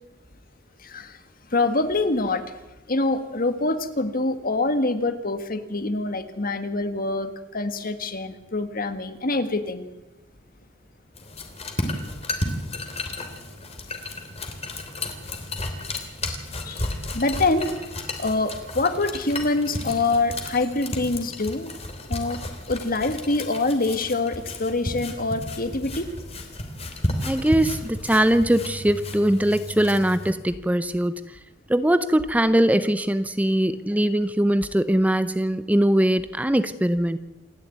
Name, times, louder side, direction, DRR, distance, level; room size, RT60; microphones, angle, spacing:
voice 1, 0.8-1.2 1.5-2.5 2.9-9.9 16.7-16.9 17.1-17.8 18.2-21.7 22.1-22.4 22.7-26.1, left 2 dB, 50° left, 9 dB, 1.8 m, -25 dB
sound 1, 11.1-30.3, left 1 dB, 35° left, 3.2 m, -33 dB
voice 2, 27.2-31.4 31.7-37.2, right 1 dB, 10° right, 12 dB, 0.7 m, -21 dB
28.0 x 11.0 x 9.3 m, 1.0 s
head